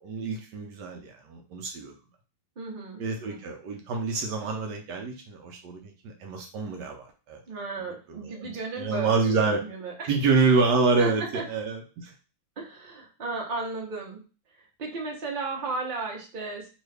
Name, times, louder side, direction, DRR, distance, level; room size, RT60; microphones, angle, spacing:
voice 1, 0.0-1.9 3.0-7.4 8.2-9.6 10.1-12.1, right 4 dB, 70° right, 3 dB, 1.1 m, -27 dB
voice 2, 2.6-3.0 3.3-3.4 7.5-10.1 11.0-11.4 12.6-14.2 14.5-16.7, right 3 dB, 45° right, -1 dB, 0.6 m, -34 dB
3.1 x 2.7 x 3.2 m, 0.34 s
omnidirectional pair, 2.0 m